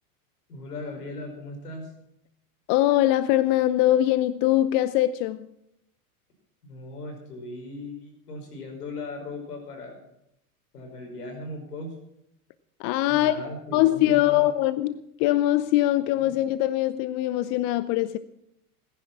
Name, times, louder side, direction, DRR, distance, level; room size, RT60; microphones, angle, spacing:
voice 1, 0.5-1.9 6.6-10.1 10.7-12.0 13.1-14.5, left 2 dB, 85° left, 5.4 m, -38 dB
voice 2, 2.7-5.5 12.8-13.4 13.7-18.2, left 14 dB, 45° left, 0.8 m, -22 dB
18.5 x 10.5 x 6.0 m
hypercardioid pair, 105°, 45 cm